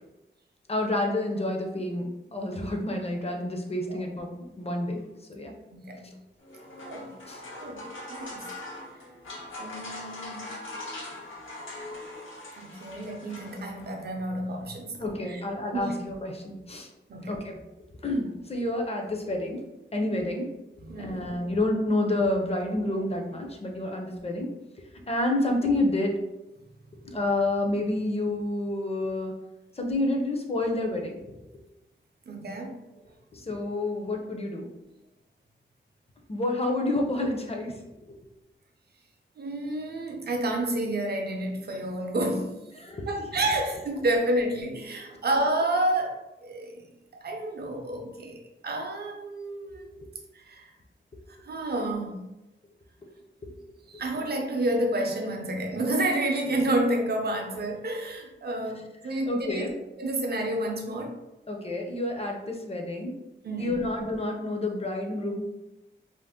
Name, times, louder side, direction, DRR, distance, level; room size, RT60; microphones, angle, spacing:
voice 1, 0.7-4.3 4.6-5.0 5.3-5.5 6.0-6.1 7.3-7.4 15.0-16.9 17.3-17.6 18.0-19.6 19.9-20.5 21.0-24.5 25.1-26.2 27.0-29.3 29.8-31.2 33.3-34.7 36.3-37.8 42.8-43.1 49.7-50.1 59.1-59.7 61.5-63.2 63.6-65.4, left 1 dB, 30° left, 1 dB, 0.5 m, -29 dB
voice 2, 5.7-6.2 6.8-7.1 7.6-7.8 8.1-8.4 9.6-10.6 12.6-15.4 15.7-15.9 17.1-17.4 20.8-21.3 32.3-32.8 39.4-42.6 43.0-46.9 47.2-49.9 50.3-50.7 51.4-52.3 53.9-59.7 60.0-61.2 63.4-63.9, right 1 dB, 55° right, 2 dB, 0.5 m, -30 dB
sound 1, 6.4-14.0, left 2 dB, 90° left, 0.9 m, -41 dB
2.5 x 2.0 x 3.5 m, 0.97 s
wide cardioid pair, 125°, 20 cm